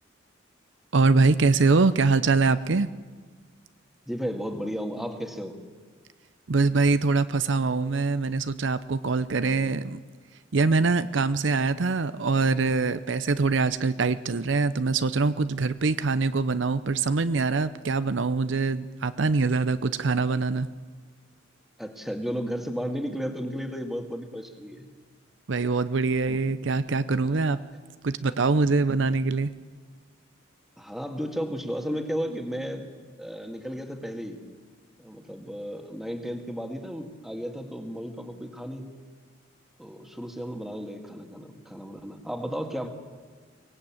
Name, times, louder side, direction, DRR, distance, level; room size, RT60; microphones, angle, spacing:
voice 1, 0.9-2.9 6.5-10.0 10.5-20.7 25.5-27.6 28.0-29.5, right 3 dB, 70° right, 13 dB, 0.7 m, -23 dB
voice 2, 4.1-5.6 9.4-9.7 21.8-24.9 26.3-26.4 27.2-27.5 30.8-32.9 33.2-34.4 35.0-38.9 39.8-42.9, equal, ahead, 5 dB, 1.8 m, -34 dB
23.5 x 18.5 x 8.7 m, 1.5 s
head